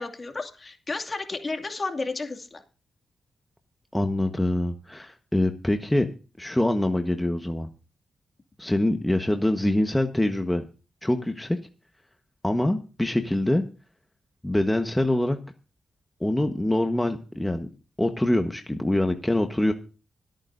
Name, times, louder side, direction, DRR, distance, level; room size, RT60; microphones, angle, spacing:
voice 1, 0.0-2.6, left 3 dB, 40° left, 4 dB, 2.5 m, -32 dB
voice 2, 3.9-6.1 6.4-7.7 8.6-10.6 11.0-11.6 12.4-13.6 14.4-15.4 16.2-17.7 18.0-19.7, left 1 dB, 10° left, 5 dB, 1.3 m, -24 dB
25.5 x 9.1 x 2.7 m, 0.34 s
cardioid pair, 50°, 0 cm